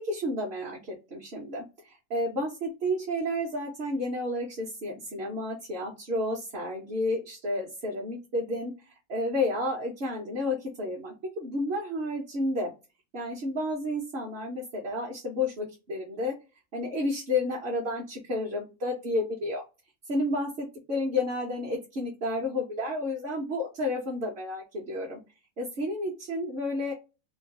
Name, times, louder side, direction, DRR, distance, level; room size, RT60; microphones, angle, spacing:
voice 1, 0.0-8.7 9.1-12.7 13.1-16.3 16.7-19.6 20.1-25.2 25.6-26.9, left 1 dB, 50° right, -2 dB, 1.1 m, -31 dB
3.0 x 2.2 x 2.7 m, 0.28 s
omnidirectional pair, 1.4 m